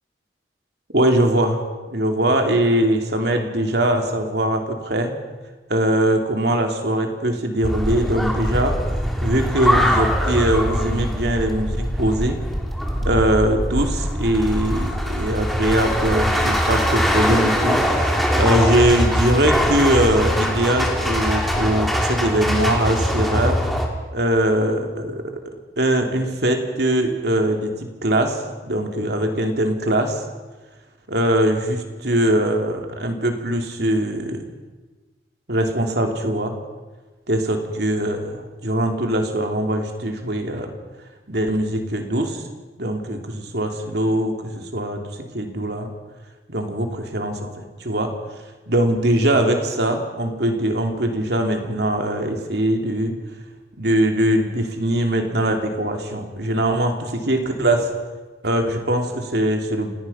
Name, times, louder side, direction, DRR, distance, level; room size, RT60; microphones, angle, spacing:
voice 1, 0.9-1.6 1.9-5.1 5.7-8.8 9.2-12.4 13.0-23.6 24.1-30.2 31.1-34.4 35.5-36.5 37.3-40.7 41.3-42.4 42.8-45.9 46.5-48.1 48.7-53.2 53.8-57.9 58.4-59.9, right 1 dB, 65° right, 4 dB, 3.0 m, -21 dB
sound 1, 7.6-23.9, equal, ahead, 2.9 m, -22 dB
29.5 x 18.5 x 5.7 m, 1.3 s
head